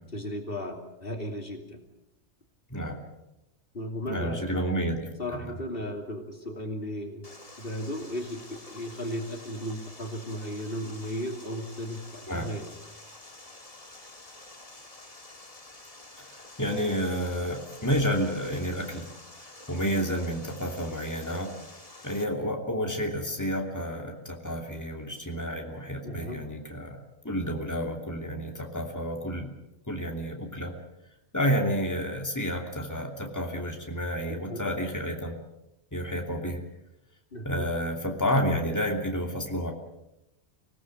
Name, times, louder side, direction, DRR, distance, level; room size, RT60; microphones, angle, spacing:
voice 1, 0.1-1.8 3.7-4.4 5.2-7.3 7.6-12.7 26.0-26.5 34.3-34.7 37.3-37.7, equal, 55° left, 3 dB, 3.0 m, -35 dB
voice 2, 4.1-5.0 5.4-5.5 12.3-12.5 16.2-16.3 16.6-19.1 19.7-21.5 22.0-29.5 29.9-30.8 31.3-35.3 35.9-36.6 37.4-39.7, equal, 15° left, 1 dB, 2.9 m, -30 dB
Water, 7.2-22.2, left 2 dB, 30° left, 2.0 m, -49 dB
25.5 x 17.5 x 7.8 m, 0.88 s
omnidirectional pair, 1.2 m